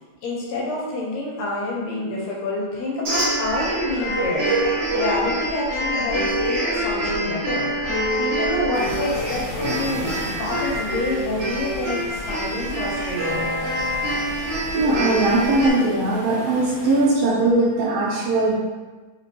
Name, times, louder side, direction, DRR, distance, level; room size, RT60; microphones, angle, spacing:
voice 1, 0.2-4.5 4.9-7.7 8.2-13.5, left 2 dB, 75° left, -4 dB, 1.8 m, -27 dB
sound 1, 3.0-15.7, right 1 dB, 55° right, 1.2 m, -25 dB
sound 2, 8.7-17.1, left 1 dB, 55° left, 1.0 m, -37 dB
voice 2, 14.7-18.5, right 2 dB, 75° right, -4 dB, 1.8 m, -20 dB
4.3 x 3.4 x 2.7 m, 1.3 s
omnidirectional pair, 3.3 m